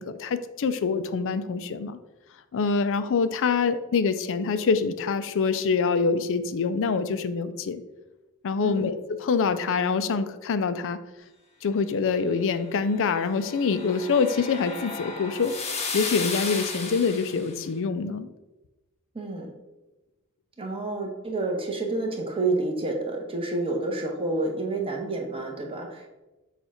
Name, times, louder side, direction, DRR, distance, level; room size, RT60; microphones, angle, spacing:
voice 1, 0.0-2.0 2.5-7.8 8.4-11.0 11.6-15.5 15.9-18.3, left 5 dB, 60° left, 12 dB, 0.4 m, -25 dB
sound 1, 12.9-17.5, left 4 dB, 30° left, 0.8 m, -34 dB
voice 2, 19.1-19.5 20.6-26.1, right 2 dB, 25° right, 1 dB, 1.1 m, -29 dB
6.9 x 2.5 x 5.6 m, 1.1 s
head